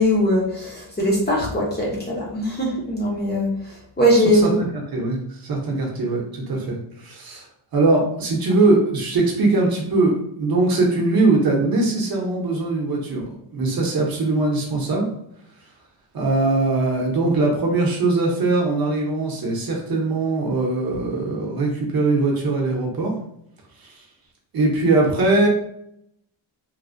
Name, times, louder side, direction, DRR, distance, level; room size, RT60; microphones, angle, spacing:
voice 1, 0.0-4.6, equal, 20° left, -5 dB, 0.5 m, -21 dB
voice 2, 4.4-7.4 7.7-15.1 16.1-23.1 23.8-23.9 24.5-25.5, right 2 dB, 45° right, -1 dB, 0.7 m, -21 dB
3.1 x 2.0 x 2.5 m, 0.72 s
wide cardioid pair, 165°, 49 cm